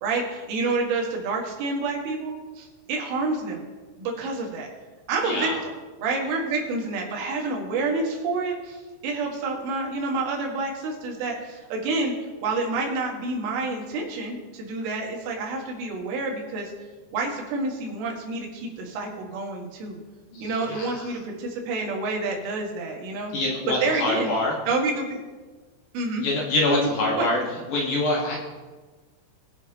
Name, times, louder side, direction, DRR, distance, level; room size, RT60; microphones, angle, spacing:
voice 1, 0.0-3.7 4.0-4.7 5.1-5.7 6.0-12.1 12.4-16.7 17.1-20.0 20.4-23.3 23.8-24.3 24.7-25.2 25.9-26.3 26.7-26.9 27.2-27.3, right 3 dB, 85° right, 0 dB, 4.3 m, -28 dB
voice 2, 5.2-5.6 20.3-21.1 23.3-24.6 26.2-27.4 27.7-28.4, left 2 dB, 60° left, -3 dB, 2.3 m, -25 dB
21.5 x 7.2 x 2.9 m, 1.3 s
omnidirectional pair, 5.5 m